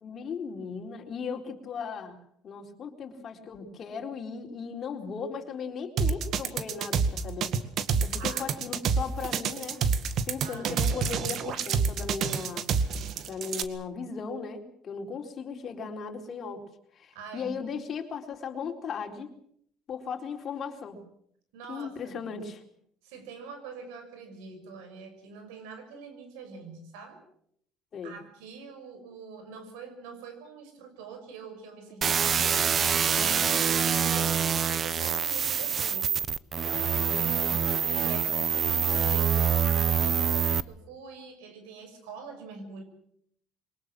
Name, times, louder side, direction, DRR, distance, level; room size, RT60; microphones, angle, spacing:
voice 1, 0.0-7.6 8.0-9.8 10.3-12.7 13.3-16.6 16.9-19.3 19.9-21.0 21.7-22.6 27.9-28.2, left 5 dB, 40° left, 4 dB, 4.1 m, -37 dB
sound 1, 6.0-13.6, right 6 dB, 55° right, 2.0 m, -27 dB
voice 2, 8.1-8.8 10.4-10.7 17.1-17.6 21.5-22.3 23.0-27.2 28.0-32.7 33.1-36.2 36.9-42.8, right 5 dB, 90° right, 7 dB, 6.3 m, -45 dB
sound 2, 32.0-40.6, right 7 dB, 35° right, 0.8 m, -25 dB
23.0 x 20.5 x 7.6 m, 0.68 s
cardioid pair, 105°, 0 cm